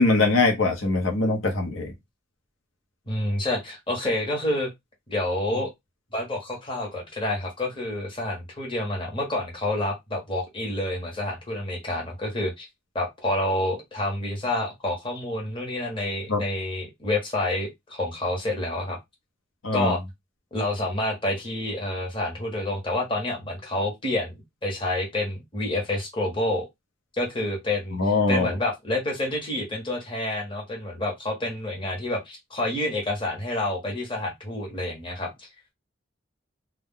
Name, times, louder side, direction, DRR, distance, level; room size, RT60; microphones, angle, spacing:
voice 1, 0.0-1.9 16.3-16.4 19.6-19.9 27.9-28.5, left 3 dB, 85° left, 0.9 m, -22 dB
voice 2, 3.1-4.7 5.1-5.7 6.1-12.7 12.9-19.0 19.7-20.0 20.5-26.7 27.1-35.5, left 1 dB, 25° left, 1.1 m, -28 dB
2.3 x 2.2 x 3.7 m
head